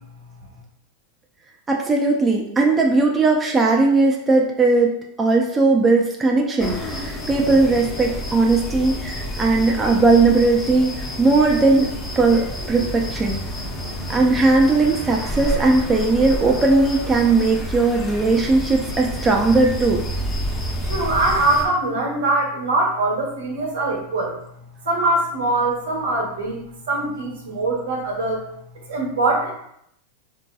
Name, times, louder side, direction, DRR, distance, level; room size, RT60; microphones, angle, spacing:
voice 1, 1.7-10.9 11.2-13.4 14.1-20.0, right 3 dB, 20° right, 1 dB, 0.4 m, -18 dB
sound 1, 6.6-21.7, equal, 25° left, 0.7 m, -29 dB
voice 2, 20.8-24.4 24.8-26.6 26.9-28.5 28.9-29.5, right 2 dB, 80° right, -1 dB, 1.0 m, -22 dB
3.6 x 2.7 x 2.2 m, 0.73 s
hypercardioid pair, 110°, 0 cm